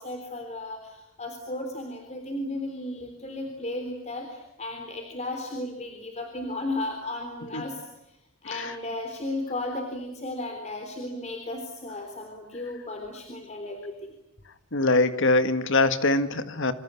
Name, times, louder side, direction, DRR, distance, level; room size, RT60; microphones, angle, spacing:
voice 1, 0.0-8.2 8.4-14.1, left 2 dB, 30° left, 4 dB, 3.6 m, -35 dB
voice 2, 14.7-16.7, left 2 dB, 55° left, 10 dB, 1.9 m, -23 dB
26.5 x 26.0 x 8.4 m, 0.90 s
head